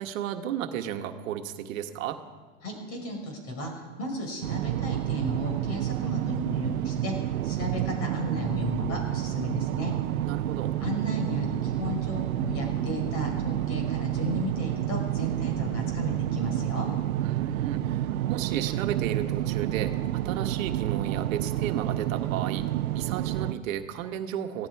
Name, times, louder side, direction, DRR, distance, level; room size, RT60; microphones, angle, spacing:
voice 1, 0.0-2.2 10.2-10.7 17.2-19.9 20.2-22.6 22.9-24.7, right 10 dB, 65° right, 6 dB, 1.5 m, -33 dB
voice 2, 2.6-7.1 7.4-9.9 10.8-16.9, left 1 dB, 35° left, 2 dB, 5.2 m, -34 dB
sound 1, 4.4-23.5, right 13 dB, 90° right, 0.8 m, -29 dB
17.5 x 16.0 x 4.8 m, 1.4 s
supercardioid pair, 145°, 42 cm